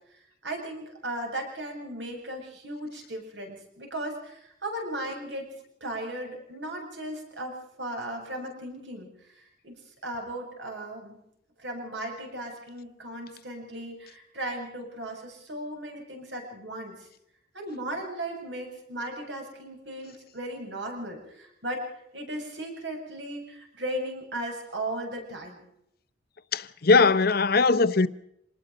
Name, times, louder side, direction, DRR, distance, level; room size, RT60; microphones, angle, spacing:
voice 1, 0.1-5.5 5.8-9.7 10.0-11.2 11.6-17.1 17.5-21.9 22.1-25.6, right 1 dB, 65° right, 8.0 m, -36 dB
voice 2, 26.5-28.1, left 4 dB, 55° left, 0.9 m, -20 dB
26.5 x 19.5 x 5.2 m
head